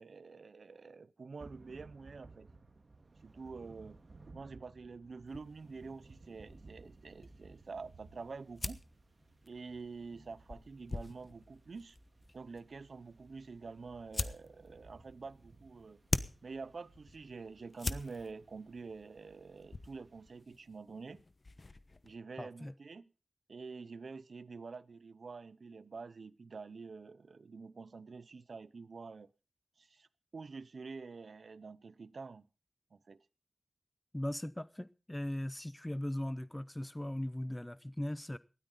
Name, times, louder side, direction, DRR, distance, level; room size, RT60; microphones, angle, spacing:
voice 1, 0.0-2.5 3.2-4.0 4.3-8.8 9.4-12.0 12.3-16.0 16.4-21.2 22.0-23.0 23.5-29.3 29.8-30.1 30.3-32.4 32.9-33.2, right 4 dB, 70° right, 0.7 m, -47 dB
Thunder / Rain, 1.4-20.4, right 3 dB, 50° right, 1.9 m, -60 dB
sound 1, 5.3-22.1, left 3 dB, 40° left, 1.0 m, -45 dB
voice 2, 22.4-22.7 34.1-38.4, left 1 dB, 15° left, 0.6 m, -39 dB
19.0 x 13.0 x 3.9 m
wide cardioid pair, 105°, 0 cm